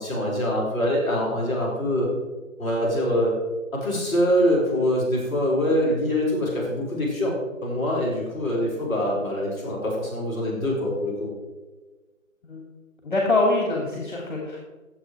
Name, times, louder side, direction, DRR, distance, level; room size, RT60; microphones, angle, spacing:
voice 1, 0.0-2.1 2.6-3.4 3.8-11.3, equal, ahead, -16 dB, 4.2 m, -24 dB
voice 2, 13.0-14.6, left 2 dB, 35° left, -1 dB, 2.5 m, -24 dB
12.0 x 8.0 x 4.8 m, 1.2 s
figure-of-eight pair, 165°, 42 cm